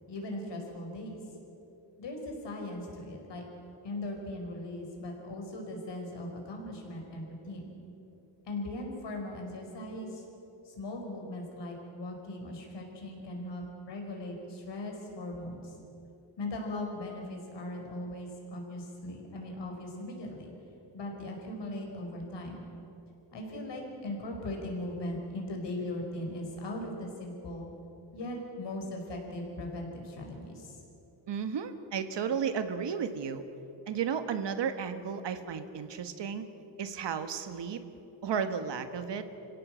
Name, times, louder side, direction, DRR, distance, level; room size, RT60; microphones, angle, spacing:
voice 1, 0.1-1.2 2.0-3.4 3.8-7.7 8.4-10.2 10.6-15.7 16.4-20.5 20.9-22.7 23.3-27.7 28.1-30.8, left 1 dB, 70° left, 1 dB, 4.9 m, -39 dB
voice 2, 31.3-33.4 33.9-36.4 36.8-37.8 38.2-39.2, right 7 dB, 70° right, 9 dB, 1.6 m, -33 dB
25.5 x 16.5 x 7.7 m, 3.0 s
cardioid pair, 120°, 44 cm